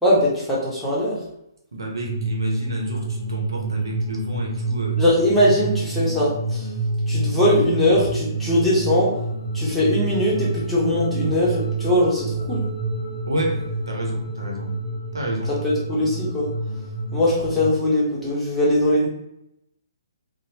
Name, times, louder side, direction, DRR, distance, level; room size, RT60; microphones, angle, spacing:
voice 1, 0.0-1.1 5.0-6.7 7.1-9.1 9.5-12.6 15.6-16.5 17.1-19.1, left 1 dB, 5° left, -8 dB, 0.9 m, -20 dB
voice 2, 1.7-5.0 13.3-14.7 15.1-15.6, right 1 dB, 85° right, -1 dB, 0.8 m, -30 dB
sound 1, 2.1-17.7, right 2 dB, 30° left, 0.5 m, -27 dB
2.9 x 2.1 x 2.8 m, 0.83 s
hypercardioid pair, 140°, 2 cm